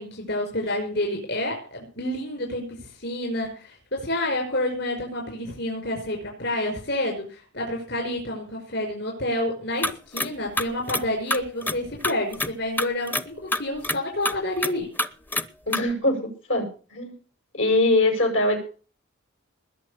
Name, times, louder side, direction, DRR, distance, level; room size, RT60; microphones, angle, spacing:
voice 1, 0.0-14.9, left 1 dB, 60° left, 2 dB, 5.7 m, -29 dB
sound 1, 9.8-10.3 10.6-11.0 11.3-12.5 12.8-13.2 13.5-14.0 14.2-14.7 15.0-15.5 15.7-15.8, left 1 dB, 10° left, 0.6 m, -26 dB
voice 2, 15.7-17.1 17.5-18.6, left 2 dB, 85° left, 2 dB, 7.4 m, -22 dB
20.5 x 6.9 x 6.8 m, 0.39 s
head